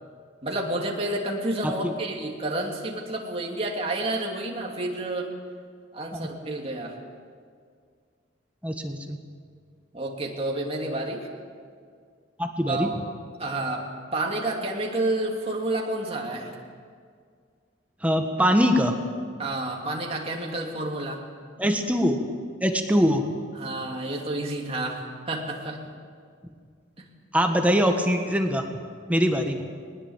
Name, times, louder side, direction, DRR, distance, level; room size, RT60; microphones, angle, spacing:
voice 1, 0.4-5.3 5.9-6.9 9.9-11.3 12.7-13.0 13.4-16.5 19.4-21.2 23.5-25.8 27.0-27.1, right 2 dB, 30° right, 0 dB, 2.8 m, -30 dB
voice 2, 8.6-9.2 12.4-12.9 18.0-18.9 21.6-22.2 22.6-23.2 27.3-28.6 29.1-29.6, equal, 10° right, 4 dB, 1.4 m, -22 dB
20.5 x 19.5 x 7.4 m, 2.1 s
head